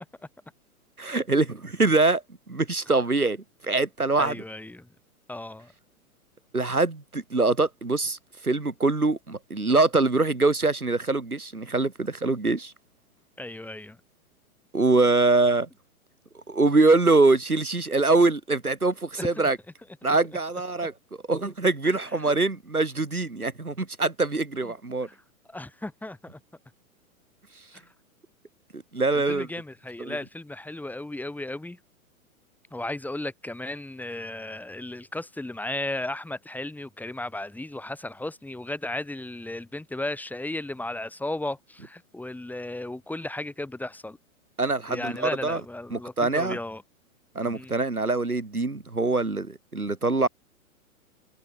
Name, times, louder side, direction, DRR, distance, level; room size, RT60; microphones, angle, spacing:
voice 1, 1.0-2.2 2.5-4.4 6.5-8.2 8.4-12.7 14.7-15.7 16.5-19.6 20.0-20.9 21.3-25.1 28.9-29.5 30.0-30.2 44.6-45.6 45.9-46.6 47.3-50.3, right 3 dB, 85° right, 6.2 m, -23 dB
voice 2, 4.2-4.9 5.3-5.7 13.4-14.0 19.2-19.5 21.9-22.0 24.6-24.7 25.1-25.2 25.5-26.4 29.1-31.8 32.7-44.2 44.9-46.8 47.4-47.7, left 2 dB, 5° left, 6.9 m, -35 dB
figure-of-eight pair, 115°, 43 cm